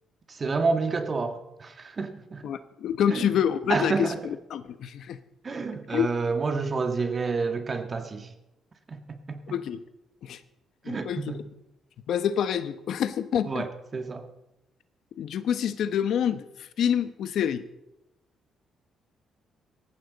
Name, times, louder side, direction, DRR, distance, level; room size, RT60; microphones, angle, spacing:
voice 1, 0.3-2.5 3.1-3.3 3.7-4.2 5.4-8.3 8.9-9.4 10.9-11.4 13.5-14.3, right 4 dB, 35° right, 7 dB, 1.8 m, -29 dB
voice 2, 2.4-5.2 5.9-6.1 9.5-9.8 10.2-10.4 10.8-11.2 12.1-13.7 15.2-17.6, left 9 dB, 70° left, 11 dB, 1.0 m, -27 dB
18.0 x 14.5 x 4.1 m, 0.89 s
cardioid pair, 90°, 0 cm